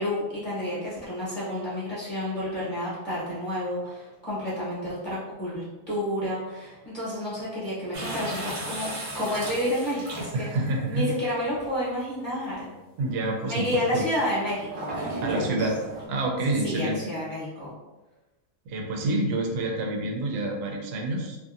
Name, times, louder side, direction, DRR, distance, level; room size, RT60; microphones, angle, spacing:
voice 1, 0.0-10.5 10.9-12.7 13.4-15.7 16.6-17.7, left 1 dB, 35° left, -9 dB, 1.1 m, -30 dB
sound 1, 7.9-10.7 11.5-11.6 14.5-16.1, right 2 dB, 50° right, 0.6 m, -35 dB
voice 2, 10.3-11.1 13.0-14.0 15.2-15.8 16.1-17.0 18.7-21.4, right 2 dB, 85° right, 1 dB, 1.2 m, -28 dB
2.9 x 2.6 x 2.4 m, 1.1 s
omnidirectional pair, 1.7 m